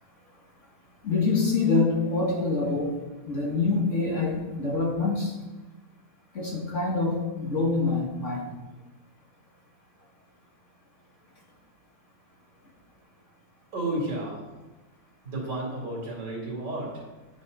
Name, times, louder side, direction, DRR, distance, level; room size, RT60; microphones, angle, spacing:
voice 1, 1.0-2.9 3.3-5.3 6.3-8.4, left 3 dB, 40° left, -1 dB, 1.6 m, -25 dB
voice 2, 13.7-14.6 15.2-17.1, right 1 dB, 55° right, -3 dB, 3.2 m, -32 dB
8.8 x 8.3 x 4.1 m, 1.1 s
omnidirectional pair, 2.3 m